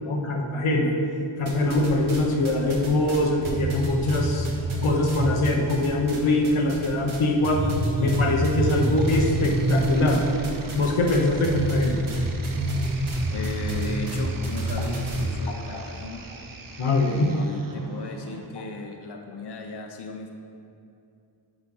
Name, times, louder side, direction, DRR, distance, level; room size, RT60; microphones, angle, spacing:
voice 1, 0.0-0.9 1.4-4.5 4.8-7.6 8.0-10.2 10.7-12.0 15.7-15.8 16.8-17.4, left 2 dB, 90° left, 1 dB, 0.9 m, -23 dB
sound 1, 1.5-2.2 2.4-6.2 6.4-7.2 7.4-15.2, right 1 dB, 80° right, 1.2 m, -27 dB
sound 2, 9.0-18.5, right 2 dB, 45° right, 0.7 m, -41 dB
voice 2, 13.3-16.3 17.1-20.3, left 3 dB, 55° left, 3 dB, 0.7 m, -36 dB
5.3 x 5.1 x 5.4 m, 2.5 s
wide cardioid pair, 55°, 48 cm